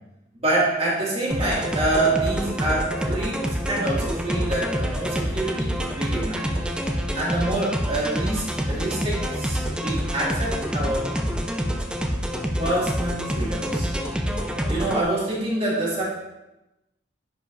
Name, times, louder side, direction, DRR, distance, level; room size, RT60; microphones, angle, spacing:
voice 1, 0.3-6.5 7.1-11.1 12.6-13.9 14.7-16.0, right 2 dB, 35° right, -5 dB, 2.1 m, -26 dB
sound 1, 1.3-15.0, equal, 5° right, 0.5 m, -27 dB
10.0 x 5.0 x 2.5 m, 0.95 s
head